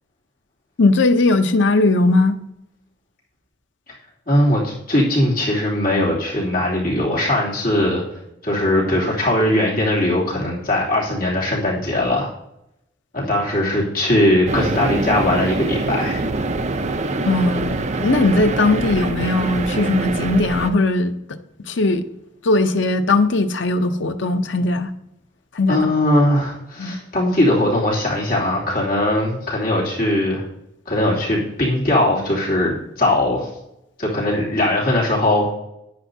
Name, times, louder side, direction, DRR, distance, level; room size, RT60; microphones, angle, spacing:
voice 1, 0.8-2.3 17.3-22.0 22.4-24.9 25.5-25.9 26.8-27.0, left 2 dB, 75° left, 0.7 m, -19 dB
voice 2, 4.3-8.0 8.4-12.3 13.1-16.2 25.7-30.4 30.9-33.5 34.0-35.5, left 1 dB, 55° left, 2.9 m, -20 dB
sound 1, 14.5-20.7, right 2 dB, 35° right, 0.6 m, -24 dB
10.5 x 10.0 x 2.8 m
head